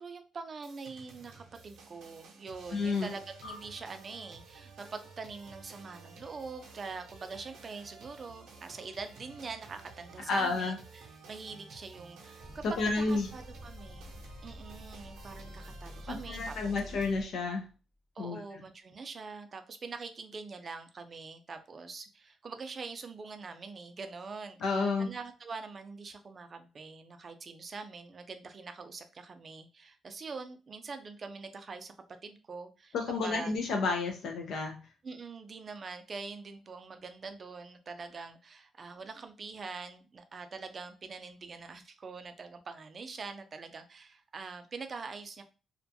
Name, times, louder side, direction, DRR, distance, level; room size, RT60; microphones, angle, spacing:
voice 1, 0.0-14.1 14.4-16.8 18.2-24.6 25.0-31.9 32.2-32.9 33.2-33.5 35.0-45.4, right 4 dB, 40° right, 8 dB, 0.4 m, -44 dB
sound 1, 0.6-17.2, right 4 dB, 85° right, 0.6 m, -53 dB
voice 2, 2.7-3.1 10.3-10.8 12.8-13.3 16.1-17.7 18.2-18.4 24.6-25.1 32.9-34.8, left 3 dB, 70° left, 2 dB, 0.4 m, -30 dB
sound 2, 3.4-6.2, left 4 dB, 90° left, 1.2 m, -54 dB
sound 3, 12.4-17.7, left 1 dB, 5° left, 0.6 m, -48 dB
2.4 x 2.2 x 2.6 m, 0.34 s
cardioid pair, 90°, 0 cm